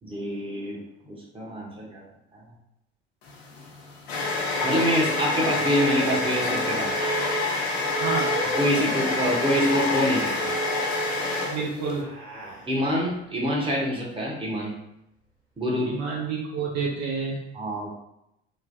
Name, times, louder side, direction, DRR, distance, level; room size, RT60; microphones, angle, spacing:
voice 1, 0.0-0.8 1.0-2.0 2.3-2.4 4.6-6.9 8.5-10.5 12.7-14.8 15.6-16.0 17.5-17.9, equal, 15° right, -4 dB, 1.0 m, -26 dB
sound 1, 3.3-12.0, left 2 dB, 75° left, 0.8 m, -27 dB
sound 2, 5.8-10.5 11.7-13.4, right 1 dB, 80° right, 1.3 m, -39 dB
voice 2, 8.0-8.4 11.5-12.0 15.9-17.4, right 4 dB, 50° right, -3 dB, 0.7 m, -29 dB
3.0 x 2.2 x 2.7 m, 0.84 s
hypercardioid pair, 60°, 32 cm